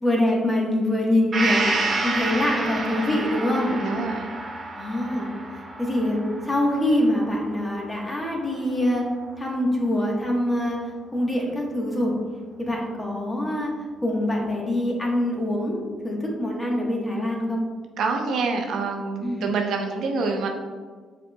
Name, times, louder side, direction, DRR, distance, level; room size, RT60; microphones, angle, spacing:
voice 1, 0.0-1.7 2.0-3.8 4.7-6.2 6.4-9.0 9.4-12.1 12.6-13.7 14.0-17.6 19.2-19.5, left 1 dB, 20° left, -2 dB, 1.2 m, -24 dB
Gong, 1.3-9.0 9.3-9.4, right 3 dB, 40° right, 1.3 m, -30 dB
voice 2, 3.8-4.3 18.0-20.5, right 4 dB, 75° right, 3 dB, 0.6 m, -26 dB
5.5 x 4.2 x 2.2 m, 1.5 s
cardioid pair, 90°, 0 cm